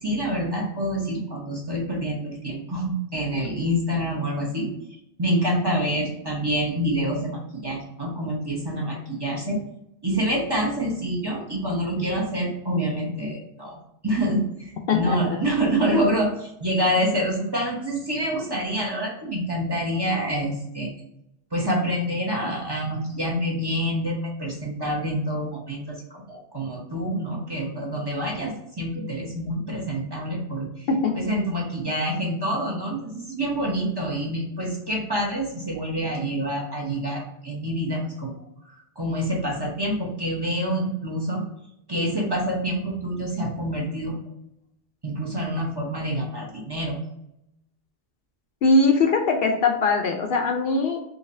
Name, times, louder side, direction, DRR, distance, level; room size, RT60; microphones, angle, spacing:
voice 1, 0.0-4.7 5.2-9.6 10.0-13.8 14.0-21.0 21.5-30.9 31.2-38.3 38.7-41.4 41.9-44.1 45.0-47.0, equal, 25° right, -3 dB, 0.8 m, -27 dB
voice 2, 14.9-15.4 30.9-31.2 48.6-51.0, left 3 dB, 65° left, 4 dB, 0.7 m, -21 dB
4.0 x 2.9 x 2.6 m, 0.81 s
omnidirectional pair, 1.1 m